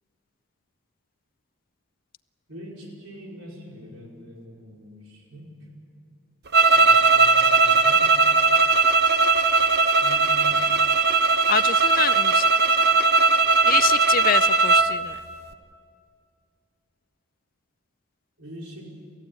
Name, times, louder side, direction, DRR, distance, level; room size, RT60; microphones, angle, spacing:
voice 1, 2.5-5.5 6.7-8.0 10.0-10.6 18.4-18.9, equal, 70° right, -2 dB, 5.1 m, -42 dB
sound 1, 6.5-14.9, right 4 dB, 45° right, 0.9 m, -18 dB
voice 2, 11.5-12.5 13.7-15.1, left 8 dB, 40° left, 14 dB, 0.5 m, -26 dB
29.0 x 14.5 x 8.7 m, 2.3 s
head